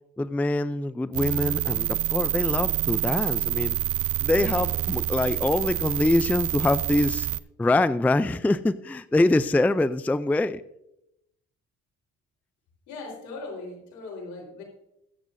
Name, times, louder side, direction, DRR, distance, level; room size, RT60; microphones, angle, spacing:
voice 1, 0.2-3.8 4.2-7.3 7.6-10.6, left 2 dB, 5° left, 15 dB, 0.4 m, -24 dB
sound 1, 1.1-7.4, right 13 dB, 50° right, 0.5 m, -27 dB
voice 2, 12.9-14.6, left 3 dB, 85° left, -1 dB, 4.1 m, -39 dB
22.5 x 8.1 x 2.6 m, 0.84 s
cardioid pair, 85°, 29 cm